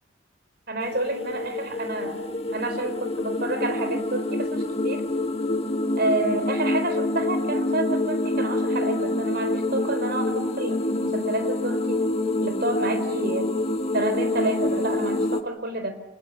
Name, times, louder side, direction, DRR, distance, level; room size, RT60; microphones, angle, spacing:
voice 1, 0.7-2.2 2.5-5.1 6.0-12.0 12.4-13.5 13.9-15.9, right 2 dB, 55° right, 9 dB, 4.6 m, -29 dB
sound 1, 0.8-15.4, left 2 dB, 30° left, 1.6 m, -26 dB
29.0 x 19.5 x 10.0 m, 0.90 s
head